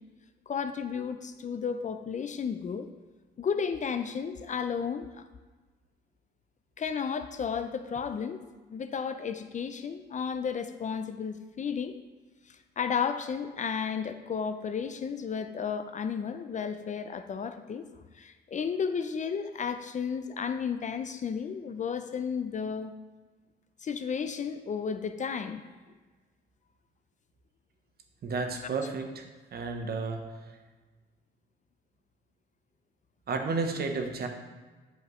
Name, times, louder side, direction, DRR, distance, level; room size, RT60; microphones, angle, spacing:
voice 1, 0.5-2.9 3.4-5.3 6.8-8.4 8.7-12.0 12.5-17.8 18.1-22.9 23.8-25.6 28.6-28.7, left 6 dB, 40° left, 9 dB, 0.5 m, -33 dB
voice 2, 28.2-29.2 29.5-30.2 33.3-34.3, right 4 dB, 50° right, 4 dB, 1.0 m, -31 dB
10.0 x 5.1 x 3.1 m, 1.3 s
cardioid pair, 90°, 20 cm